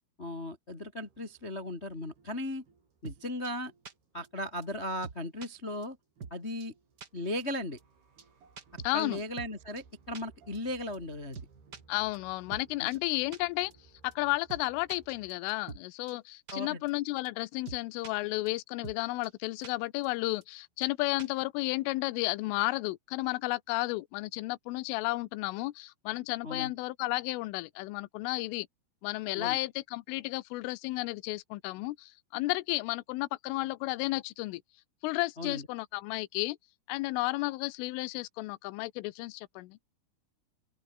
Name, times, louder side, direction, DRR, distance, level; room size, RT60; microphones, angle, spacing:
voice 1, 0.2-2.6 3.0-3.7 4.1-6.0 6.3-6.7 7.1-7.8 8.9-11.4 16.5-16.8 26.4-26.7 29.3-29.6 35.4-35.7, left 1 dB, 30° left, 1.1 m, -37 dB
sound 1, 1.0-15.3, right 5 dB, 50° right, 7.9 m, -62 dB
sound 2, 3.0-3.2 3.4-3.5 3.8-3.9 4.2-4.3 4.6-4.7 5.0-5.5 5.8-5.9 6.2-6.3 6.6-6.7 7.0-7.1 7.4-7.5 7.8-7.9 8.2-8.3 8.6-9.5 9.8-9.9 10.1-10.2 10.5-10.6 10.9-11.0 11.3-11.8 12.1-12.2 12.5-12.6 12.9-13.0 13.3-13.4 13.7-13.8 14.1-14.2 14.5-14.6 14.9-15.8 16.1-16.2 16.5-16.6 16.9-17.0 17.2-17.3 17.6-18.1 18.4-18.5 18.8-19.0 19.2-19.3 19.6-19.7 20.0-20.1 20.4-20.5 20.8-20.9 21.2-21.4, right 5 dB, 90° right, 0.9 m, -44 dB
voice 2, 8.8-9.2 11.9-13.7 14.0-28.7 29.0-34.6 35.0-36.6 36.9-40.0, left 20 dB, 80° left, 3.4 m, -33 dB
open air
omnidirectional pair, 6.0 m